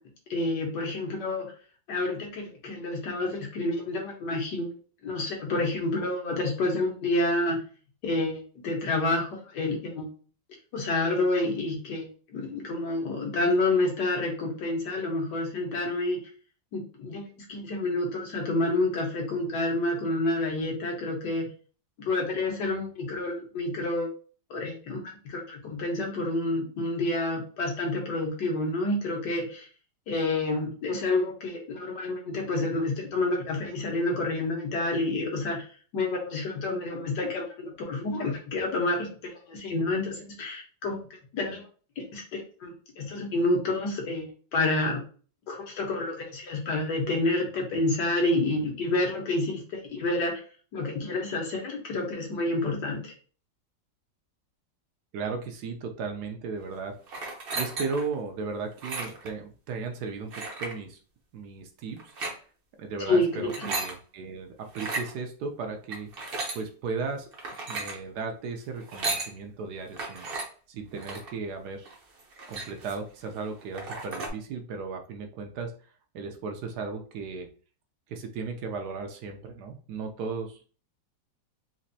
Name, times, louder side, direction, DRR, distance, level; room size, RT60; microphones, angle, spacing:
voice 1, 0.3-1.5 1.9-4.7 5.0-7.6 8.0-10.1 10.7-12.1 12.3-16.2 16.7-21.5 22.0-24.1 24.5-29.7 30.1-35.6 35.9-39.1 39.5-41.0 41.3-41.6 42.0-45.0 45.5-50.3 50.7-53.1 63.1-63.7, left 2 dB, 75° left, -1 dB, 1.6 m, -29 dB
voice 2, 55.1-57.0 57.5-61.0 61.3-62.1 62.8-66.1 66.5-67.3 67.7-70.3 70.7-71.9 72.5-75.7 76.1-77.5 78.1-80.7, right 4 dB, 70° right, 4 dB, 1.1 m, -35 dB
sound 1, 57.1-58.1 58.7-59.3 60.3-60.8 62.0-62.4 63.3-63.9 64.7-65.1 65.9-66.6 67.3-68.0 68.8-69.3 70.0-70.5 71.0-71.3 71.9-72.0 72.2-73.1 73.4-73.5 73.7-74.3, right 3 dB, 50° right, 0.7 m, -34 dB
4.1 x 2.5 x 2.6 m, 0.40 s
omnidirectional pair, 1.9 m